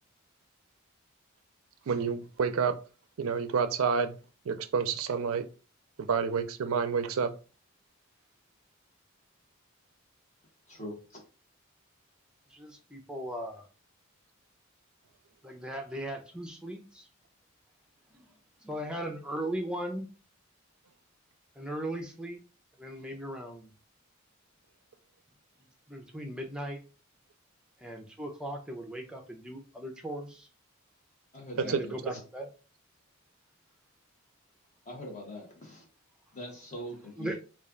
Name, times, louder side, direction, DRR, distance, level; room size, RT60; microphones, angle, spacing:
voice 1, 1.9-2.8 3.2-4.2 4.5-5.5 6.0-7.3 31.6-31.8, right 6 dB, 80° right, 0.4 m, -29 dB
voice 2, 10.7-11.0 31.3-32.0 34.8-35.8 36.3-37.3, equal, 35° left, 1.3 m, -42 dB
voice 3, 12.5-13.7 15.4-17.1 18.1-18.3 18.6-20.1 21.6-22.4 22.8-23.7 25.9-26.8 27.8-30.5 31.6-32.5 37.2-37.4, right 1 dB, 5° right, 0.6 m, -38 dB
3.2 x 2.4 x 3.7 m
head